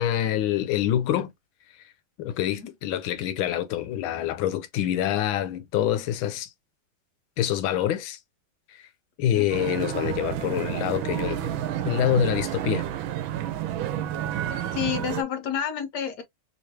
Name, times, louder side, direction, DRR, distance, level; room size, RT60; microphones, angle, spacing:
voice 1, 0.0-1.3 2.2-6.5 7.4-8.2 9.2-11.5 11.8-12.9, left 11 dB, 90° left, 1.5 m, -26 dB
sound 1, 9.5-15.2, right 11 dB, 85° right, 1.4 m, -30 dB
voice 2, 14.7-16.2, left 8 dB, 65° left, 1.3 m, -29 dB
3.4 x 3.2 x 2.6 m
omnidirectional pair, 2.1 m